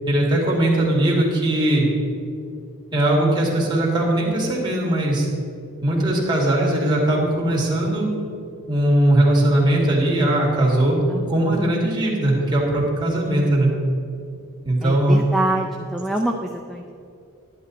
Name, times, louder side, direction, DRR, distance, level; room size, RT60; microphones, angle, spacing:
voice 1, 0.1-1.9 2.9-5.3 5.8-8.1 8.7-11.0 11.3-13.7 14.6-15.2, right 1 dB, 20° right, -4 dB, 2.5 m, -19 dB
voice 2, 11.1-11.6 14.8-16.9, right 1 dB, ahead, 2 dB, 0.5 m, -26 dB
11.0 x 10.5 x 4.2 m, 2.4 s
head